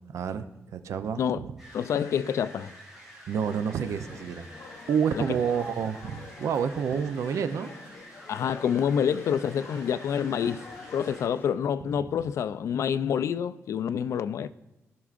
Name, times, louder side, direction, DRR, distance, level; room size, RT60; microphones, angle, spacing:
voice 1, 0.1-1.6 3.3-4.5 4.9-7.7, right 7 dB, 80° right, 0.5 m, -29 dB
sound 1, 1.6-11.3, equal, 5° right, 3.4 m, -49 dB
voice 2, 1.7-2.7 8.3-10.7 10.9-14.5, left 8 dB, 75° left, 0.3 m, -27 dB
sound 2, 3.3-11.6, left 4 dB, 50° left, 0.8 m, -47 dB
16.0 x 6.0 x 2.5 m
wide cardioid pair, 150°, 5 cm